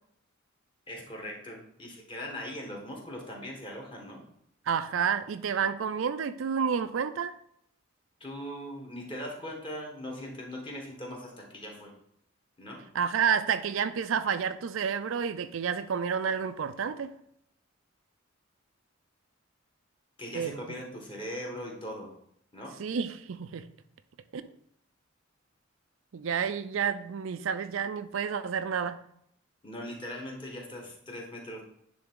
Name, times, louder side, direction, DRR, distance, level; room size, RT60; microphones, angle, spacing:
voice 1, 0.9-4.2 8.2-11.9 12.6-12.8 20.2-22.1 22.5-22.7 29.6-31.6, equal, 25° left, -1 dB, 1.6 m, -40 dB
voice 2, 4.7-7.4 12.9-17.1 20.3-20.6 22.8-23.7 24.3-24.5 26.1-29.0, right 7 dB, 75° right, 11 dB, 0.4 m, -30 dB
9.8 x 3.4 x 3.8 m, 0.72 s
head